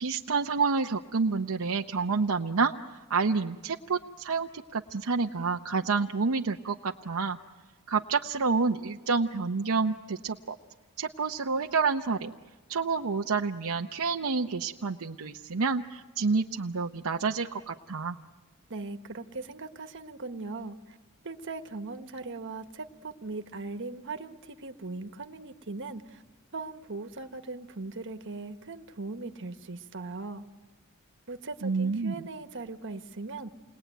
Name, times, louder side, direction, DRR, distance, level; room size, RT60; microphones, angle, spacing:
voice 1, 0.0-2.7 3.1-7.4 7.9-10.6 11.0-12.3 12.7-18.2 31.6-32.1, right 4 dB, 75° right, 2 dB, 0.8 m, -28 dB
voice 2, 18.7-21.0 21.2-26.2 26.5-30.5 31.3-33.5, right 3 dB, 60° right, 8 dB, 1.4 m, -39 dB
29.0 x 21.0 x 9.2 m, 1.3 s
head